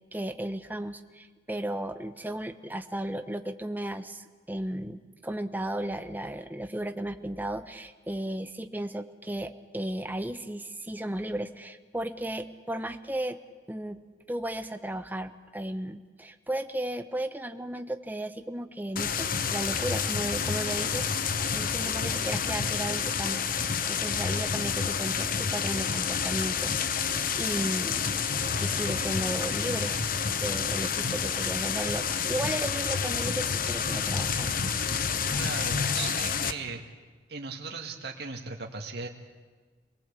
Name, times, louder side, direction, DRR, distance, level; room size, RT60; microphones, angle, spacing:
voice 1, 0.1-13.4 13.7-14.0 14.3-23.4 23.9-26.8 27.4-28.0 28.4-30.0 30.3-34.5, right 1 dB, 10° right, 8 dB, 1.0 m, -35 dB
sound 1, 19.0-36.5, left 6 dB, 50° left, 1.0 m, -29 dB
voice 2, 35.4-36.8 37.3-39.1, right 4 dB, 60° right, 1 dB, 2.0 m, -37 dB
27.0 x 19.5 x 8.3 m, 1.4 s
head